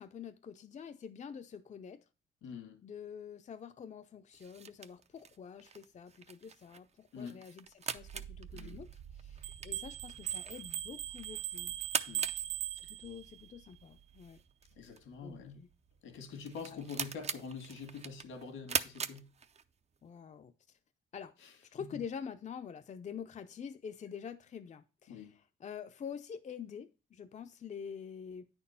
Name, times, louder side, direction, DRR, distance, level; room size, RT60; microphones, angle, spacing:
voice 1, 0.0-2.0 2.8-8.9 9.1-11.7 12.9-14.4 15.2-15.7 16.7-16.8 20.0-20.5 21.1-21.3 21.7-28.5, left 7 dB, 35° left, 0.6 m, -46 dB
voice 2, 2.4-2.8 7.1-7.4 8.5-8.8 12.1-12.3 14.8-15.6 16.0-19.3 21.4-22.0 25.1-25.4, left 5 dB, 80° left, 1.8 m, -46 dB
sound 1, 4.3-20.0, right 6 dB, 35° right, 0.6 m, -43 dB
sound 2, 8.0-17.9 18.2-19.0, right 9 dB, 90° right, 1.7 m, -55 dB
sound 3, 9.4-13.4, right 13 dB, 70° right, 0.8 m, -39 dB
9.2 x 4.4 x 5.6 m
cardioid pair, 90°, 20 cm